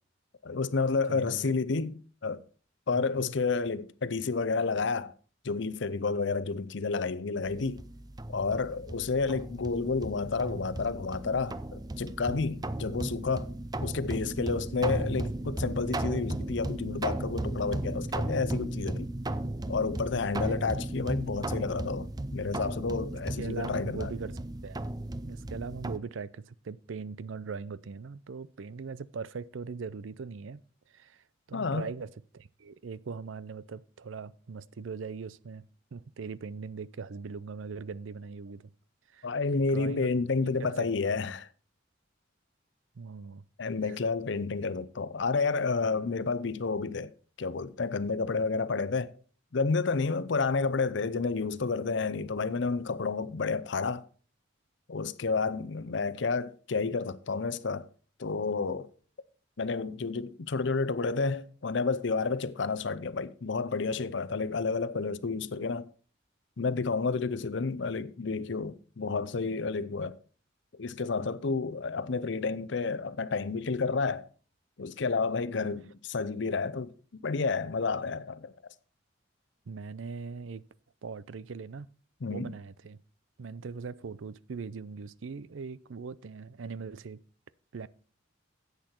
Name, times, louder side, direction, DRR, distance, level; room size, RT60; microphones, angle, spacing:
voice 1, 0.4-2.4 2.9-5.1 5.4-7.8 8.3-13.5 13.8-19.1 19.7-24.1 31.5-31.9 39.2-41.5 43.6-47.1 47.4-49.1 49.5-54.1 54.9-57.9 58.2-58.9 59.6-65.9 66.6-70.2 70.8-74.3 74.8-76.9 77.2-78.5 82.2-82.5, left 4 dB, 65° left, 0.6 m, -30 dB
voice 2, 1.1-1.6 2.9-3.3 23.4-24.9 25.3-30.6 30.9-38.7 39.1-39.3 39.7-40.1 40.5-40.9 43.0-43.4 43.8-44.0 79.7-80.6 81.0-81.9 82.3-83.0 83.4-87.2 87.7-87.9, right 5 dB, 80° right, 0.5 m, -40 dB
sound 1, 7.4-26.0, right 1 dB, 20° right, 0.5 m, -35 dB
10.5 x 8.2 x 4.4 m
head